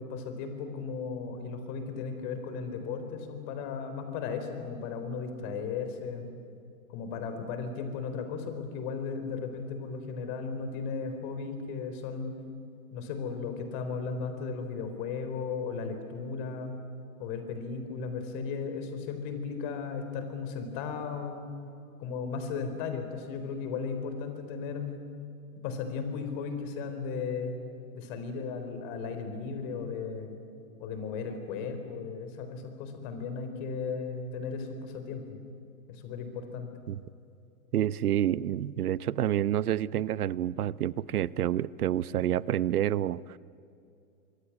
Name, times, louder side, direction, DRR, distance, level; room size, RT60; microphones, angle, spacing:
voice 1, 0.0-6.3 6.9-12.3 12.9-16.8 17.2-21.5 22.0-25.0 25.6-27.5 27.9-30.4 30.8-35.4 35.9-36.7, left 5 dB, 35° left, 7 dB, 4.1 m, -36 dB
voice 2, 37.7-43.4, right 11 dB, 85° right, 19 dB, 0.9 m, -28 dB
25.0 x 23.5 x 9.8 m, 2.6 s
hypercardioid pair, 155°, 44 cm